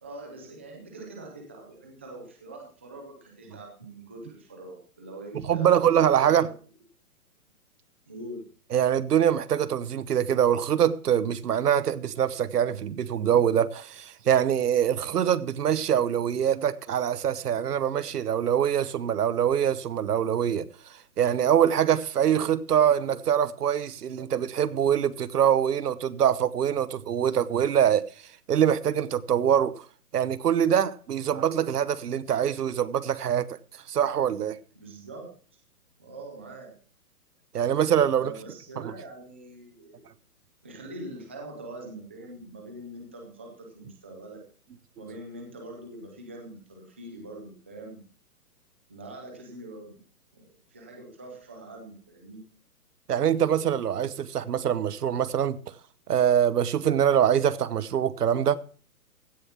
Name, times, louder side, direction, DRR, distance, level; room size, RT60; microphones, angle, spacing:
voice 1, 0.0-6.5 8.1-8.5 34.7-35.3 36.0-36.7 38.1-40.0 40.6-44.5 45.0-48.0 48.9-50.0 50.3-52.4, right 1 dB, 10° right, 0.5 m, -43 dB
voice 2, 5.5-6.5 8.7-20.6 21.2-28.0 28.5-29.9 30.1-33.6 33.9-34.6 37.5-38.3 38.8-38.9 53.1-55.6 56.1-58.6, right 9 dB, 85° right, 1.1 m, -24 dB
16.0 x 6.8 x 5.7 m
hypercardioid pair, 165°, 46 cm